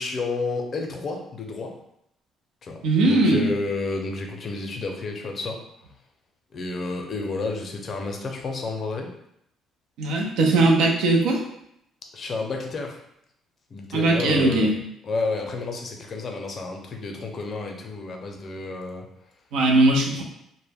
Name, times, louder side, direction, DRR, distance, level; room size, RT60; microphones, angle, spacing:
voice 1, 0.0-1.7 2.6-2.8 3.1-5.6 6.5-9.1 12.1-13.0 13.7-14.7 15.0-19.1, left 3 dB, 50° left, 2 dB, 0.5 m, -30 dB
voice 2, 2.8-3.5 10.0-11.4 13.9-14.7 19.5-20.2, right 2 dB, 75° right, 0 dB, 0.5 m, -19 dB
2.1 x 2.1 x 3.4 m, 0.77 s
supercardioid pair, 60°, 0 cm